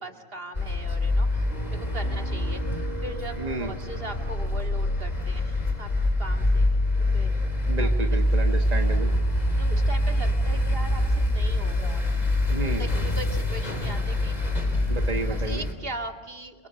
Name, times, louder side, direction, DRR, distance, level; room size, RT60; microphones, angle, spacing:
voice 1, 0.0-5.9 6.2-6.7 7.1-7.4 7.8-7.9 9.5-12.1 12.7-14.4 15.3-16.7, right 1 dB, 65° right, 4 dB, 2.4 m, -39 dB
sound 1, 0.5-15.7, left 1 dB, 40° left, 3.5 m, -25 dB
Piano, 1.5-9.4, right 1 dB, 75° left, 3.1 m, -45 dB
voice 2, 3.4-3.7 7.7-9.1 12.5-12.9 14.9-15.6, right 2 dB, 40° right, 4 dB, 1.7 m, -31 dB
28.5 x 23.5 x 7.7 m, 1.3 s
omnidirectional pair, 1.0 m